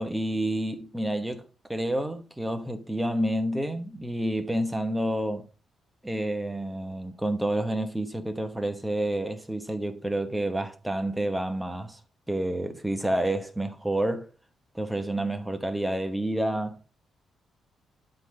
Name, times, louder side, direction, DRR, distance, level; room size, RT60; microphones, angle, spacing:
voice 1, 0.0-1.4 1.7-5.5 6.0-12.0 12.3-14.3 14.7-16.8, right 1 dB, 5° right, 1.0 m, -29 dB
11.5 x 3.9 x 5.3 m
cardioid pair, 160°, 0 cm